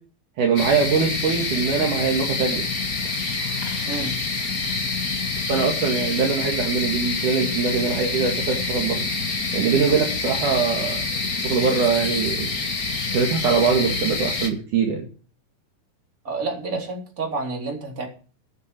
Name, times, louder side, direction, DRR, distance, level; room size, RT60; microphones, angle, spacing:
voice 1, 0.4-2.7 5.5-9.0 9.5-12.5 13.1-15.1, right 5 dB, 60° right, 1 dB, 3.2 m, -22 dB
sound 1, 0.6-14.5, left 3 dB, 30° left, 1.8 m, -27 dB
voice 2, 16.2-18.1, right 3 dB, 20° right, 0 dB, 4.0 m, -29 dB
14.0 x 11.0 x 6.2 m, 0.39 s
omnidirectional pair, 4.4 m